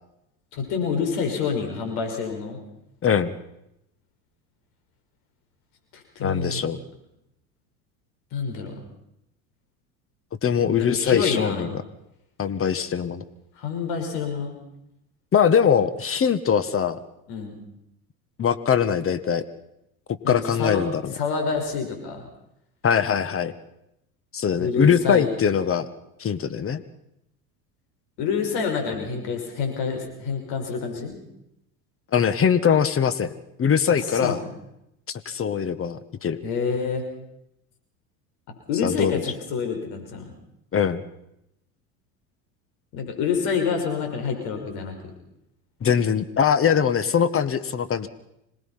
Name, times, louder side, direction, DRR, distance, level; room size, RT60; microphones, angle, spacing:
voice 1, 0.5-2.6 5.9-6.6 8.3-8.7 10.7-11.6 13.6-14.6 17.3-17.6 20.2-20.8 21.1-22.3 24.6-25.3 28.2-31.2 34.1-34.4 36.4-37.0 38.7-40.3 42.9-44.9, left 5 dB, 60° left, 4 dB, 5.8 m, -27 dB
voice 2, 3.0-3.3 6.2-6.8 10.4-11.8 12.4-13.2 15.3-17.0 18.4-19.4 20.3-21.1 22.8-23.5 24.3-25.9 26.2-26.8 32.1-33.3 33.6-34.4 35.1-36.4 38.8-39.3 40.7-41.0 45.8-48.1, left 7 dB, 30° left, 13 dB, 1.7 m, -22 dB
26.0 x 19.5 x 5.8 m, 0.83 s
hypercardioid pair, 80°, 43 cm